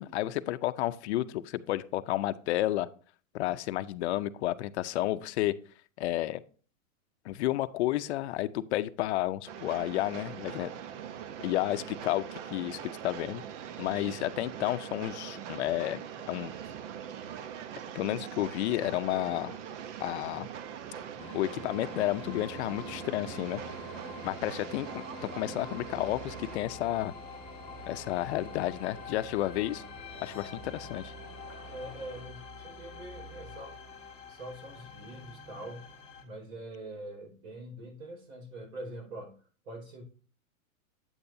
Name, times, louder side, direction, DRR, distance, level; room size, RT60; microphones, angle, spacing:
voice 1, 0.0-2.9 3.3-5.6 6.0-6.4 7.2-10.7 11.4-13.4 13.8-16.5 17.9-19.6 20.0-20.5 21.3-23.6 24.2-27.1 27.9-29.8 30.2-31.1, left 15 dB, 55° left, 13 dB, 0.6 m, -31 dB
Train, 9.5-26.6, right 9 dB, 60° right, 0.8 m, -42 dB
sound 1, 20.7-32.2, equal, 15° right, 2.4 m, -52 dB
sound 2, 21.2-36.2, left 3 dB, 10° left, 1.6 m, -46 dB
voice 2, 31.7-33.8 34.3-35.9 36.2-39.4 39.6-40.0, right 1 dB, 80° right, 2 dB, 4.9 m, -44 dB
8.8 x 8.5 x 2.7 m, 0.40 s
hypercardioid pair, 140°, 41 cm